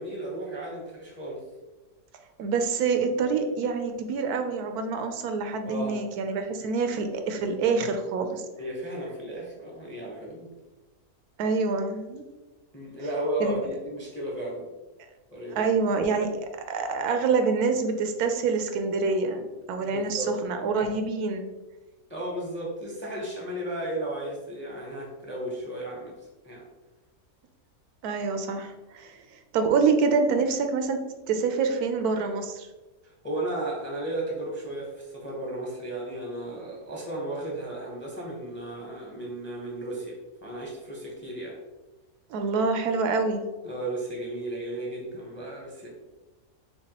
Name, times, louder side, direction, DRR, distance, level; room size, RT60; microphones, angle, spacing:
voice 1, 0.0-1.4 5.7-6.0 8.6-10.5 12.7-14.7 15.3-15.7 19.9-20.3 22.1-26.1 26.4-26.7 33.0-41.6 43.6-45.9, right 1 dB, 10° left, -3 dB, 0.6 m, -34 dB
voice 2, 2.4-8.4 11.4-12.2 13.4-13.6 15.5-21.5 28.0-31.0 31.3-32.7 42.3-43.4, right 4 dB, 85° right, 6 dB, 1.1 m, -26 dB
6.7 x 2.3 x 2.9 m, 1.1 s
omnidirectional pair, 1.6 m